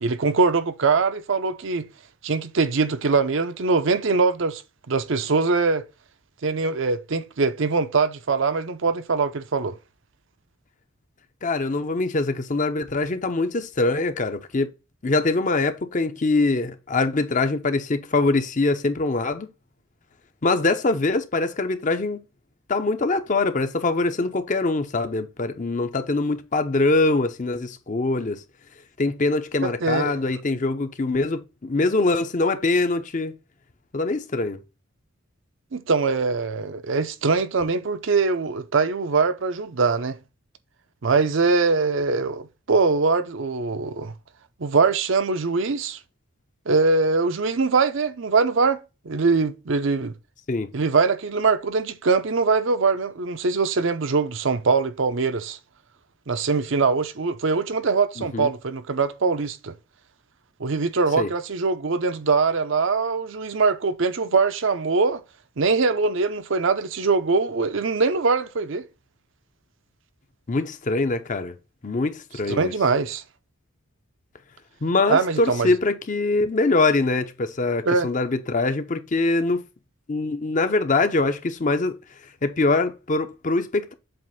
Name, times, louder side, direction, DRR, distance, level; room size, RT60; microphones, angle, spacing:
voice 1, 0.0-1.9 2.2-4.6 4.9-5.8 6.4-9.8 29.6-30.1 35.7-40.2 41.0-44.1 44.6-46.0 46.7-48.8 49.0-50.1 50.7-55.6 56.3-59.7 60.6-65.2 65.6-68.8 72.5-73.2 75.1-75.7 77.9-78.1, right 4 dB, 60° right, 0.6 m, -22 dB
voice 2, 11.4-14.7 15.0-19.5 20.4-22.2 22.7-28.4 29.0-33.3 33.9-34.6 50.5-50.7 58.2-58.5 61.2-61.3 70.5-71.5 71.8-72.7 74.8-79.6 80.1-82.0 82.4-83.9, left 3 dB, 35° left, 0.6 m, -23 dB
7.7 x 2.6 x 5.5 m
head